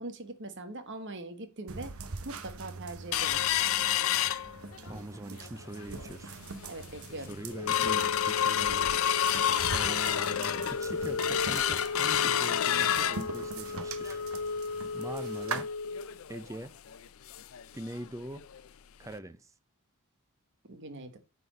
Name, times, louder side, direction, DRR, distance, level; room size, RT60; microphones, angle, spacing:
voice 1, 0.0-1.9 2.2-3.4 6.7-7.3 9.5-9.7 20.7-21.2, right 2 dB, 60° right, 1.3 m, -42 dB
sound 1, 1.7-15.6, right 4 dB, 85° right, 1.0 m, -43 dB
sound 2, 3.1-5.0 5.4-5.5 5.8-6.2 6.7-6.8 7.1-17.6 18.0-18.1 18.4-18.6 19.1-19.2, left 9 dB, 75° left, 0.5 m, -29 dB
voice 2, 4.8-6.4 7.3-14.2 14.9-15.7 16.3-16.7 17.7-18.4 19.0-19.5, right 1 dB, 15° right, 0.6 m, -43 dB
9.0 x 4.3 x 5.1 m
head